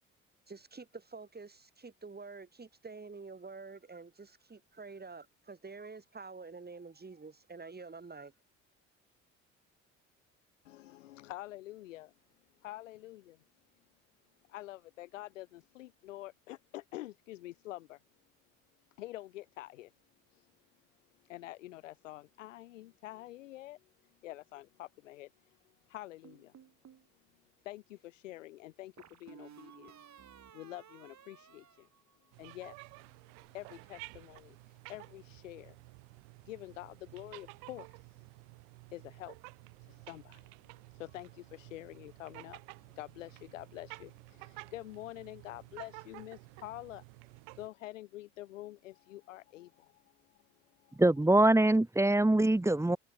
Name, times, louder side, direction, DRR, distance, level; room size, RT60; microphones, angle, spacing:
voice 1, 0.5-8.3, right 4 dB, 25° right, 5.9 m, -48 dB
voice 2, 10.6-12.1 12.6-13.4 14.5-18.0 19.0-19.9 20.3-20.5 21.2-23.9 24.2-25.6 25.9-26.6 27.6-29.9 30.5-31.9 32.4-32.8 33.5-35.8 36.4-38.2 38.9-39.4 39.8-40.5 40.9-47.0 47.5-50.4 50.8-51.0, left 16 dB, 85° left, 4.0 m, -47 dB
sound 1, 26.2-27.1 29.0-32.6, right 8 dB, 50° right, 4.7 m, -56 dB
sound 2, 32.3-47.7, right 40 dB or more, 75° right, 4.9 m, -52 dB
voice 3, 51.0-53.0, right 2 dB, 10° right, 1.0 m, -24 dB
hypercardioid pair, 55°, 37 cm